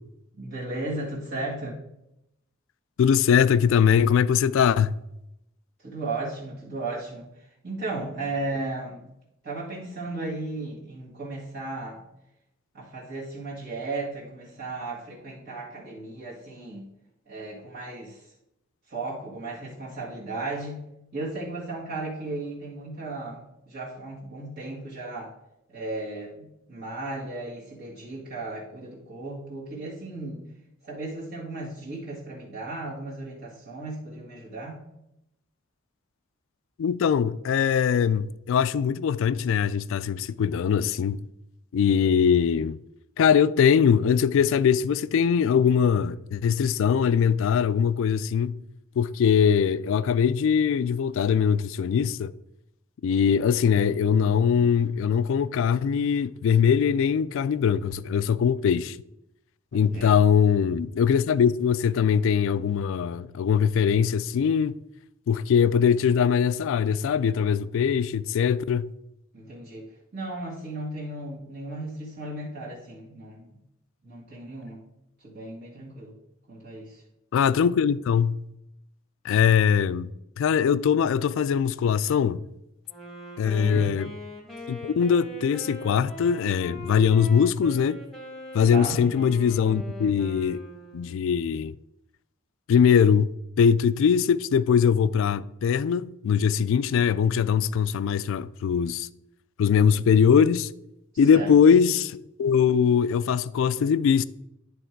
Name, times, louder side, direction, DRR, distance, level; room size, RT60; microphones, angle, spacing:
voice 1, 0.3-1.8 5.8-7.3 7.6-9.0 9.4-12.0 12.7-16.9 17.3-18.2 18.9-20.8 21.1-25.3 25.7-30.5 30.8-34.8 59.7-60.2 69.3-69.8 70.1-73.5 74.0-74.8 75.2-76.1 76.5-77.0 83.4-83.9 88.6-89.0 101.3-101.8, right 2 dB, 55° right, 1.8 m, -35 dB
voice 2, 3.0-5.0 36.8-41.2 41.7-42.8 43.2-48.6 49.0-52.3 53.0-59.0 59.7-64.8 65.3-68.9 77.3-78.4 79.2-80.1 80.4-82.5 83.4-84.1 84.7-88.0 88.5-90.6 90.9-91.7 92.7-93.3 93.6-99.1 99.6-100.7 101.2-102.1 102.4-104.2, left 7 dB, 65° left, 0.3 m, -22 dB
Wind instrument woodwind instrument, 82.9-91.2, left 1 dB, ahead, 1.2 m, -41 dB
10.0 x 3.6 x 4.5 m
head